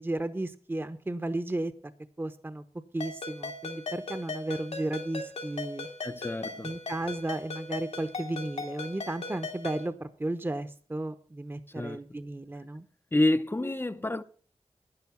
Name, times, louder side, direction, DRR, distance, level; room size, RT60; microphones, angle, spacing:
voice 1, 0.0-1.7 2.2-2.6 2.9-5.9 6.6-12.9, right 1 dB, 20° right, 0.9 m, -34 dB
Ringtone, 3.0-9.9, left 3 dB, 90° left, 2.4 m, -38 dB
voice 2, 6.0-6.7 11.8-12.0 13.1-14.2, left 1 dB, 20° left, 0.6 m, -28 dB
10.5 x 10.5 x 5.6 m
wide cardioid pair, 70°, 11 cm